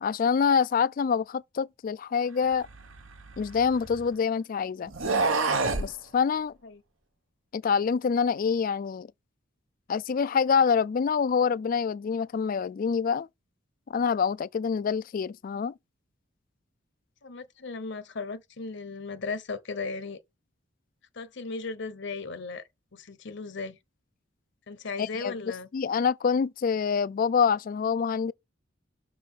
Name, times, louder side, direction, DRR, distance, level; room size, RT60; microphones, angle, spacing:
voice 1, 0.0-2.7 3.4-4.9 5.8-6.5 7.5-9.1 9.9-13.3 13.9-15.7 25.0-25.3 25.7-28.3, left 6 dB, 45° left, 0.3 m, -26 dB
sound 1, 2.6-4.1 4.9-5.9, right 3 dB, 85° right, 1.3 m, -28 dB
voice 2, 17.2-20.2 21.1-22.6 22.9-23.8 24.7-25.7, left 4 dB, 60° left, 0.9 m, -36 dB
6.2 x 3.9 x 5.5 m
head